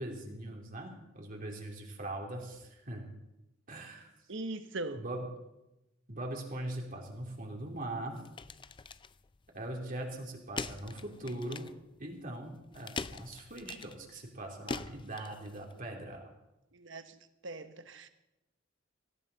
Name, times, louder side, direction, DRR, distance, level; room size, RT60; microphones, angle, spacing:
voice 1, 0.0-3.0 3.7-4.1 4.9-5.2 6.1-8.2 9.5-11.6 12.0-16.2, right 1 dB, 45° right, 0 dB, 3.1 m, -41 dB
voice 2, 4.3-5.0 16.7-18.1, right 2 dB, 70° right, 9 dB, 1.2 m, -41 dB
sound 1, 7.1-15.8, left 4 dB, 25° left, 0.4 m, -44 dB
18.0 x 16.0 x 4.1 m, 0.94 s
head